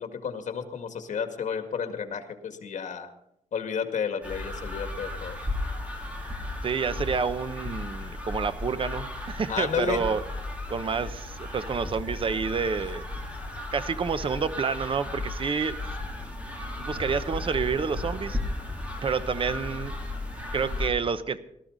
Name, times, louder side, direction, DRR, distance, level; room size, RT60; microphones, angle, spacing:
voice 1, 0.0-3.1 3.5-5.4 9.5-10.0, left 6 dB, 80° left, 7 dB, 2.0 m, -32 dB
sound 1, 4.2-20.9, left 2 dB, 10° right, 3.5 m, -35 dB
voice 2, 6.6-10.2 10.7-13.1 13.7-15.8 16.8-18.4 19.0-19.9 20.5-21.4, right 5 dB, 45° right, 12 dB, 0.9 m, -29 dB
19.0 x 13.5 x 4.0 m, 0.79 s
wide cardioid pair, 155°, 12 cm